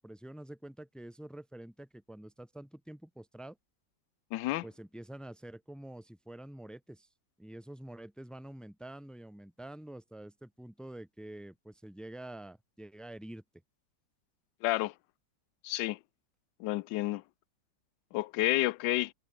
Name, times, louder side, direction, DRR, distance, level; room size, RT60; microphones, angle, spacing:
voice 1, 0.0-3.6 4.6-7.1 7.4-13.4, right 1 dB, ahead, 0.6 m, -47 dB
voice 2, 4.3-4.6 14.6-14.9 15.6-16.0 16.6-17.2 18.1-19.1, left 17 dB, 85° left, 1.3 m, -30 dB
omnidirectional pair, 1.9 m